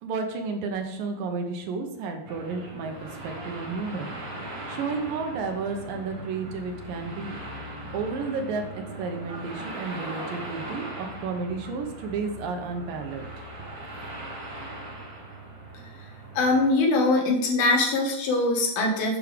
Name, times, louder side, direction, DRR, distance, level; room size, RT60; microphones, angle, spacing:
voice 1, 0.0-2.9 3.2-4.1 4.7-7.4 7.9-13.3, right 4 dB, 70° right, 4 dB, 2.5 m, -32 dB
sound 1, 2.3-16.7, right 1 dB, 50° right, 3.9 m, -39 dB
voice 2, 16.4-19.2, left 2 dB, 70° left, -1 dB, 3.4 m, -22 dB
8.2 x 5.4 x 5.0 m, 0.83 s
omnidirectional pair, 4.6 m